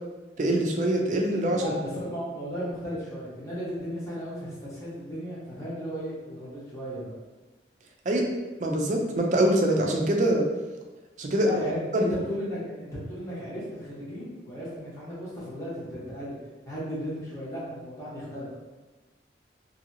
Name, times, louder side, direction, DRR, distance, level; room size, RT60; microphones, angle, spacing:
voice 1, 0.4-1.7 8.1-8.2 8.6-10.5 11.2-11.5 11.9-12.1, right 1 dB, 45° right, 2 dB, 0.4 m, -24 dB
voice 2, 1.5-7.1 11.4-16.4 16.6-18.6, equal, 15° left, -9 dB, 1.0 m, -35 dB
2.7 x 2.7 x 2.7 m, 1.2 s
head